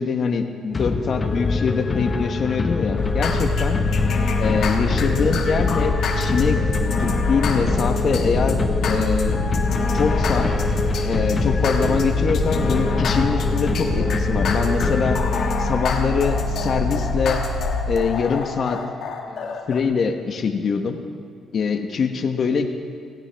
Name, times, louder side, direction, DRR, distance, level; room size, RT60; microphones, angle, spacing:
voice 1, 0.0-3.8 4.4-6.6 6.9-9.4 9.9-10.5 11.0-15.2 15.6-17.4 17.9-18.8 19.3-21.0 21.5-22.7, left 5 dB, 55° left, 5 dB, 1.1 m, -24 dB
sound 1, 0.7-15.8, left 3 dB, 30° left, 1.2 m, -25 dB
sound 2, 3.0-19.8, left 3 dB, 70° left, 1.6 m, -25 dB
17.0 x 15.5 x 3.4 m, 2.3 s
cardioid pair, 90°, 0 cm